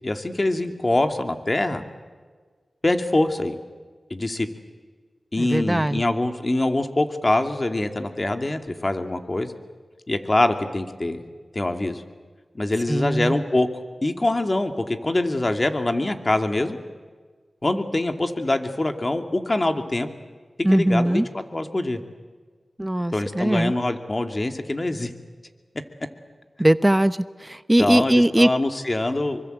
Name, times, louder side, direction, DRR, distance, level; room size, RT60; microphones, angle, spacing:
voice 1, 0.0-1.8 2.8-3.6 4.1-4.5 5.3-9.5 10.1-11.2 11.5-12.0 12.5-13.7 14.0-16.8 17.6-20.1 20.6-22.0 23.1-25.1 27.8-29.4, left 2 dB, 35° left, 6 dB, 2.6 m, -24 dB
voice 2, 5.4-6.0 12.9-13.3 20.6-21.3 22.8-23.7 26.6-28.5, right 1 dB, 15° right, 13 dB, 0.9 m, -20 dB
26.0 x 24.0 x 8.1 m, 1.5 s
cardioid pair, 45°, 0 cm